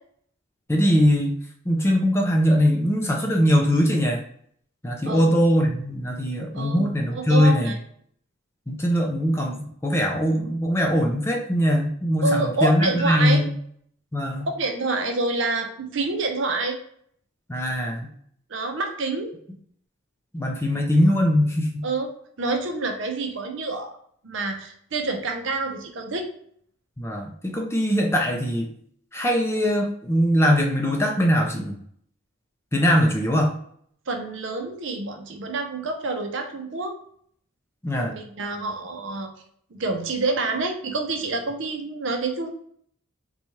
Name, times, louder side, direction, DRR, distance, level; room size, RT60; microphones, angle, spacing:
voice 1, 0.7-1.4 1.7-4.2 4.8-7.7 8.7-13.5 14.1-14.5 17.5-18.1 20.3-21.9 27.0-28.7 29.1-31.7 32.7-33.6 37.8-38.1, equal, 10° left, 1 dB, 0.4 m, -21 dB
voice 2, 7.1-7.8 12.2-13.4 14.5-16.8 18.5-19.3 21.8-22.1 22.4-24.0 24.2-26.3 34.1-37.0 38.0-39.3 39.7-42.5, right 3 dB, 60° right, 4 dB, 0.6 m, -27 dB
4.1 x 2.3 x 3.0 m, 0.64 s
head